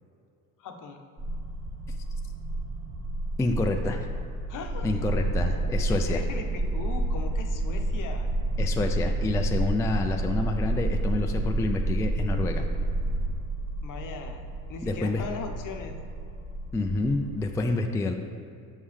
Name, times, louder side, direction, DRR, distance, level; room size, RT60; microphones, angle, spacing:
voice 1, 0.6-1.0 4.5-5.0 5.9-8.3 13.8-14.4 14.7-16.0, left 5 dB, 50° left, 4 dB, 0.8 m, -39 dB
sound 1, 1.2-17.6, right 1 dB, 35° right, 0.9 m, -35 dB
voice 2, 3.4-4.1 4.8-6.2 8.6-12.7 14.8-15.2 16.7-18.1, left 2 dB, 10° left, 4 dB, 0.3 m, -28 dB
sound 2, 5.1-13.3, right 2 dB, 65° right, 0.8 m, -28 dB
7.3 x 5.4 x 3.3 m, 2.5 s
supercardioid pair, 70°, 39 cm